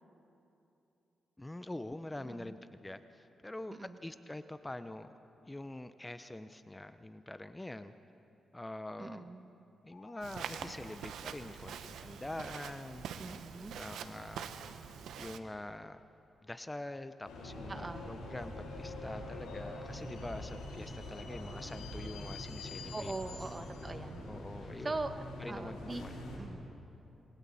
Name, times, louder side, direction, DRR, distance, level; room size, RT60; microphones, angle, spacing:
voice 1, 1.4-5.1 5.5-7.9 8.5-9.3 9.8-13.1 13.7-14.5 15.2-16.0 16.4-23.1 24.3-25.0 25.4-26.1, left 1 dB, 15° left, 11 dB, 0.8 m, -45 dB
voice 2, 2.2-2.5 3.7-4.0 9.0-9.5 13.2-13.7 17.7-18.1 22.9-24.2 24.8-26.0 26.4-26.6, right 2 dB, 35° right, 8 dB, 1.5 m, -41 dB
sound 1, 9.9-12.4, left 4 dB, 65° left, 4.7 m, -61 dB
Walk footsteps, 10.2-15.4, right 7 dB, 80° right, 0.9 m, -45 dB
sound 2, 17.2-26.4, left 1 dB, 85° left, 6.4 m, -44 dB
28.5 x 21.5 x 4.3 m, 2.9 s
supercardioid pair, 45°, 0 cm